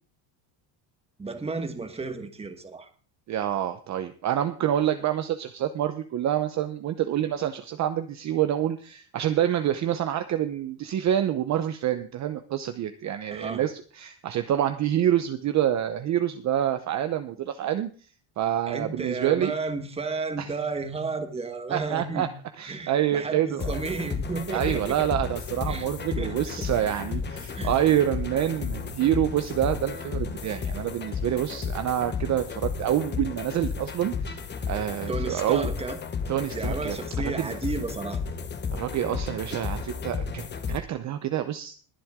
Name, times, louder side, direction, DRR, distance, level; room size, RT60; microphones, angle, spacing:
voice 1, 1.2-2.9 13.3-13.6 18.7-22.3 22.7-25.1 25.7-25.9 26.2-26.4 27.5-27.7 35.1-36.0 36.5-38.2, right 4 dB, 10° right, 8 dB, 1.4 m, -33 dB
voice 2, 3.3-17.9 18.4-19.5 20.4-20.5 21.7-22.3 22.6-23.7 24.5-34.4 34.7-35.7 36.3-37.0 37.2-37.6 38.8-41.8, right 11 dB, 35° right, 9 dB, 0.8 m, -27 dB
sound 1, 23.6-40.8, left 5 dB, 20° left, 1.2 m, -33 dB
21.5 x 7.7 x 3.6 m, 0.40 s
cardioid pair, 160°, 48 cm